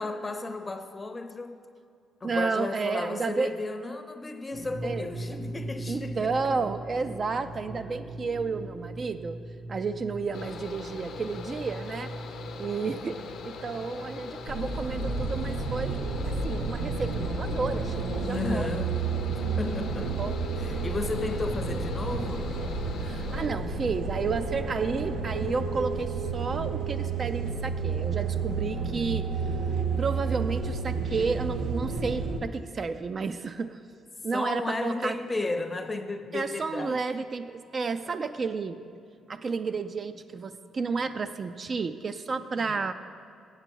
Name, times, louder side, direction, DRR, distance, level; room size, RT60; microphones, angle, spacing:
voice 1, 0.0-1.6 2.2-6.5 18.3-19.0 19.3-20.2 20.6-22.6 28.7-29.3 34.3-37.0 38.1-38.2 42.6-42.8, left 3 dB, 25° left, 8 dB, 0.6 m, -34 dB
voice 2, 2.2-3.5 4.8-5.1 5.9-9.4 9.7-12.1 12.6-18.7 20.0-20.4 23.0-29.3 30.0-33.8 34.2-35.2 36.3-38.8 39.3-42.9, right 4 dB, 40° right, 10 dB, 0.3 m, -31 dB
sound 1, 4.5-24.0, right 1 dB, 70° right, 1.1 m, -43 dB
Mechanical fan, 10.3-23.5, left 6 dB, 75° left, 0.8 m, -42 dB
sound 2, 14.5-32.4, right 4 dB, 85° right, 0.7 m, -31 dB
8.0 x 7.7 x 4.5 m, 2.4 s
cardioid pair, 90°, 0 cm